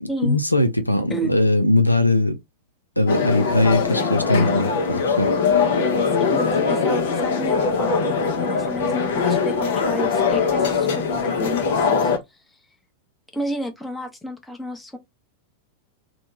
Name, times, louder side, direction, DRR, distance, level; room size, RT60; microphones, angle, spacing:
voice 1, 0.0-2.4 3.0-5.3, left 1 dB, 85° left, 0.5 m, -20 dB
sound 1, 3.1-12.2, left 5 dB, 55° left, 0.8 m, -21 dB
voice 2, 6.1-12.1 13.3-15.0, equal, 5° left, 0.8 m, -31 dB
2.9 x 2.2 x 3.2 m
figure-of-eight pair, 90°, 0 cm